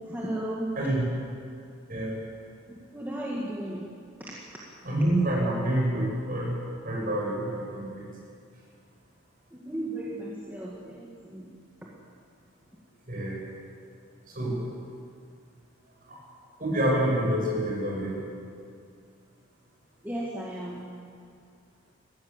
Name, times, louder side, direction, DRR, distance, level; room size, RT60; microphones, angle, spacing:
voice 1, 0.1-0.7 2.9-3.9 9.5-11.5 20.0-20.9, right 1 dB, 10° right, -5 dB, 2.0 m, -34 dB
voice 2, 1.9-2.2 4.8-6.5 6.8-8.1 13.1-13.4 14.3-14.6 16.1-16.2 16.6-18.2, right 1 dB, 40° right, -3 dB, 6.7 m, -27 dB
21.0 x 16.0 x 8.1 m, 2.3 s
head